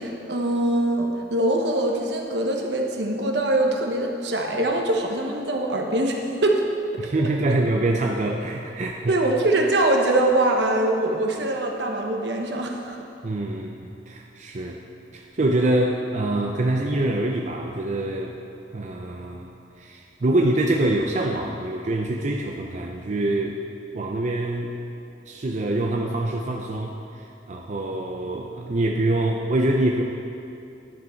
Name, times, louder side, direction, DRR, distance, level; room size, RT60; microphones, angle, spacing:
voice 1, 0.0-6.6 9.1-13.0, right 1 dB, 75° right, 1 dB, 1.2 m, -23 dB
voice 2, 7.0-9.2 13.2-14.8 15.1-18.4 18.7-19.5 19.8-23.6 23.9-24.7 25.3-30.0, right 2 dB, 45° right, 1 dB, 0.6 m, -25 dB
11.0 x 8.0 x 4.5 m, 2.7 s
head